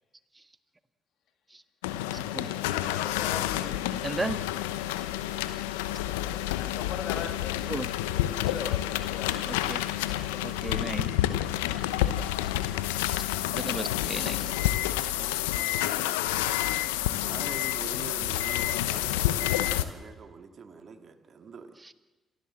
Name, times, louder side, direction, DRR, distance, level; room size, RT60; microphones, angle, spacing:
sound 1, 1.8-19.8, left 14 dB, 85° left, 0.8 m, -29 dB
voice 1, 2.1-2.5 4.0-4.4 7.7-7.9 9.5-9.8 10.4-11.1 13.5-14.6 21.8-21.9, right 2 dB, 20° right, 10 dB, 1.7 m, -35 dB
voice 2, 2.7-3.9 6.5-7.8 8.1-9.6 10.1-10.4 14.4-14.5 15.2-15.5, left 7 dB, 70° left, 6 dB, 2.6 m, -41 dB
voice 3, 15.0-16.2 17.2-21.8, right 5 dB, 50° right, 6 dB, 2.4 m, -45 dB
28.5 x 15.0 x 7.7 m, 1.1 s
hypercardioid pair, 50°, 0 cm